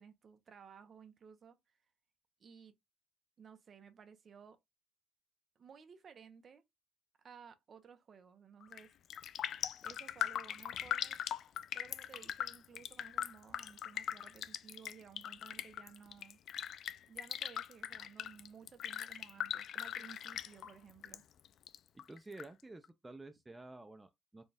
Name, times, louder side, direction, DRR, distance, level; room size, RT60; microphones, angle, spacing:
voice 1, 0.0-1.6 2.4-2.8 3.4-4.6 5.6-6.6 7.2-8.9 9.8-11.2 11.7-16.4 17.1-21.2, right 6 dB, 40° right, 0.8 m, -57 dB
Raindrop, 8.6-8.8 9.1-21.2 21.4-22.4 22.8-22.9, left 10 dB, 60° left, 0.4 m, -40 dB
voice 2, 21.9-24.4, right 2 dB, 10° right, 0.5 m, -51 dB
4.3 x 2.3 x 3.4 m
cardioid pair, 140°, 0 cm